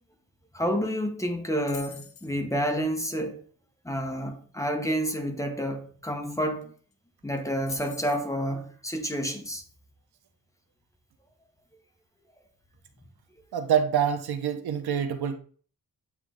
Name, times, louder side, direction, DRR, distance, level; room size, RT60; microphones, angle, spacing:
voice 1, 0.5-3.4 3.8-6.7 7.2-9.6, equal, 10° left, 0.8 m, -29 dB
sound 1, 1.7-2.3 6.3-6.4 6.6-6.9 7.7-8.3, left 8 dB, 90° left, 1.0 m, -44 dB
voice 2, 13.5-15.4, right 8 dB, 85° right, 0.9 m, -26 dB
8.2 x 3.1 x 3.7 m
wide cardioid pair, 140°, 37 cm